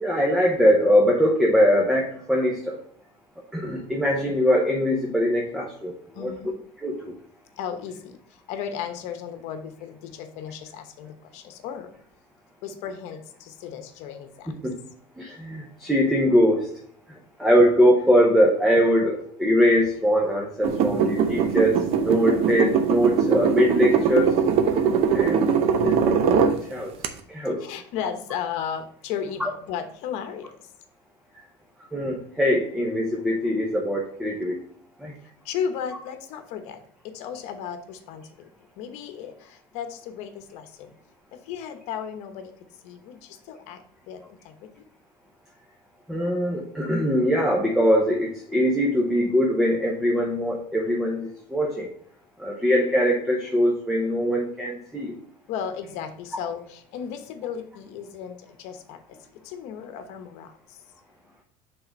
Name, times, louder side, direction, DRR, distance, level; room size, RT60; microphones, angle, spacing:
voice 1, 0.0-2.8 3.5-6.3 6.8-7.1 14.5-14.8 15.2-16.7 17.4-24.4 25.1-25.5 25.8-26.9 27.3-27.6 29.4-29.5 31.9-34.6 35.0-35.1 46.1-51.9 52.4-55.2, equal, 5° right, -1 dB, 0.8 m, -22 dB
voice 2, 6.2-6.5 7.6-8.2 8.5-11.9 12.6-14.5 27.6-30.5 35.4-36.8 37.1-38.5 38.8-40.7 41.3-42.5 42.8-43.8 44.1-44.7 55.5-59.0 59.4-60.5, left 8 dB, 65° left, 7 dB, 1.0 m, -35 dB
sound 1, 20.6-26.6 27.0-27.1, right 7 dB, 50° right, 0.7 m, -21 dB
5.7 x 3.7 x 5.2 m, 0.64 s
cardioid pair, 140°, 12 cm